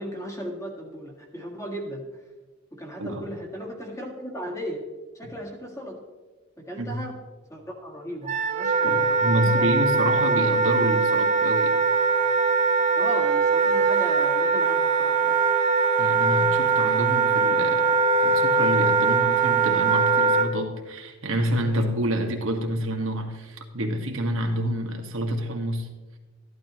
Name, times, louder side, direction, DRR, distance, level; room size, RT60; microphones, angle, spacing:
voice 1, 0.0-2.0 2.7-4.8 5.2-6.0 6.6-7.2 7.5-9.7 10.3-10.4 13.0-15.3, equal, 15° left, 1 dB, 1.7 m, -36 dB
Wind instrument woodwind instrument, 8.2-20.5, right 4 dB, 35° right, 1.1 m, -21 dB
voice 2, 8.8-11.8 16.0-25.9, equal, 80° right, 2 dB, 1.6 m, -28 dB
14.0 x 11.0 x 3.0 m, 1.2 s
head